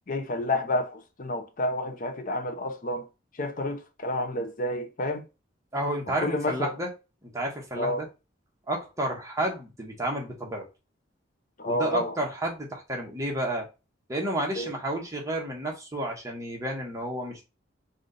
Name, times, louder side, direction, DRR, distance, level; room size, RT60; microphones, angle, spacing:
voice 1, 0.1-3.1 3.4-5.3 6.2-6.7 7.8-8.1 11.6-12.1 14.6-14.7, left 1 dB, 45° left, 0.8 m, -29 dB
voice 2, 5.7-6.9 7.2-8.1 8.7-10.7 11.6-13.7 14.1-17.4, right 1 dB, 15° right, 1.3 m, -31 dB
4.9 x 2.6 x 4.0 m
head